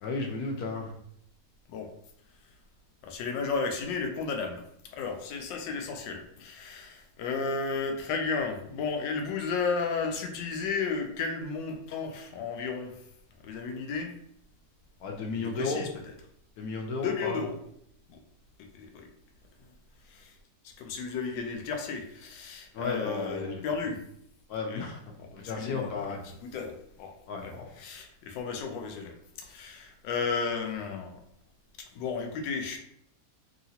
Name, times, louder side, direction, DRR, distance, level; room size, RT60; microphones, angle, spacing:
voice 1, 0.0-0.9 15.0-15.9 16.6-17.4 22.7-23.6 24.5-25.0 25.3-26.2 27.3-27.7, left 3 dB, 70° left, 1 dB, 1.1 m, -33 dB
voice 2, 3.0-4.7 5.0-13.0 13.4-14.1 15.3-16.1 17.0-17.6 18.1-18.2 18.7-19.1 20.0-20.3 20.6-24.0 24.7-24.9 25.2-27.1 27.4-31.2 31.8-32.8, left 5 dB, 85° left, 4 dB, 1.3 m, -34 dB
3.1 x 2.8 x 2.8 m, 0.70 s
omnidirectional pair, 1.9 m